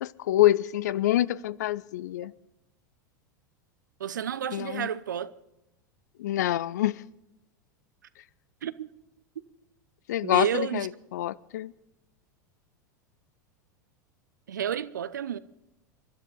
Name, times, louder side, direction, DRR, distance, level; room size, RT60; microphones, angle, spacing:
voice 1, 0.0-2.3 4.5-4.9 6.2-7.0 10.1-11.7, left 14 dB, 60° left, 0.5 m, -26 dB
voice 2, 4.0-5.3 8.6-8.9 10.2-10.9 14.5-15.4, right 9 dB, 70° right, 0.7 m, -31 dB
27.5 x 12.5 x 3.9 m
figure-of-eight pair, 85°, 10 cm